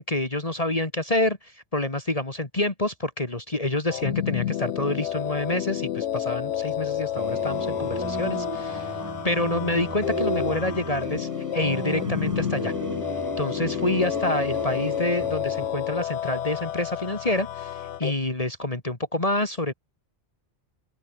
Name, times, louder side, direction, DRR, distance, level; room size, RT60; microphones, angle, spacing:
voice 1, 0.0-9.0 9.2-12.7 13.4-19.7, left 1 dB, 30° left, 2.4 m, -27 dB
sound 1, 3.9-18.1, left 11 dB, 85° left, 1.0 m, -30 dB
sound 2, 7.1-15.7, right 3 dB, 20° right, 0.9 m, -34 dB
omnidirectional pair, 1.2 m